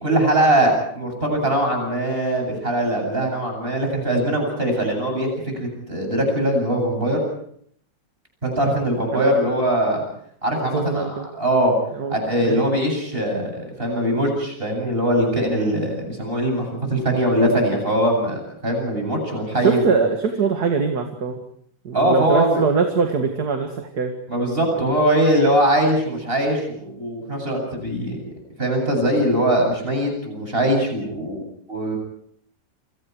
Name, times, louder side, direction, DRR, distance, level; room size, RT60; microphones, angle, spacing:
voice 1, 0.0-7.2 8.4-10.0 10.4-11.7 12.1-20.0 21.9-22.6 24.3-28.2 28.6-31.4 31.7-32.0, right 1 dB, 30° right, 2 dB, 8.4 m, -21 dB
voice 2, 10.7-11.3 11.9-12.2 12.4-12.6 19.3-21.4 21.8-24.1 24.8-24.9, right 5 dB, 55° right, 4 dB, 2.5 m, -22 dB
29.0 x 24.0 x 4.8 m, 0.65 s
omnidirectional pair, 2.0 m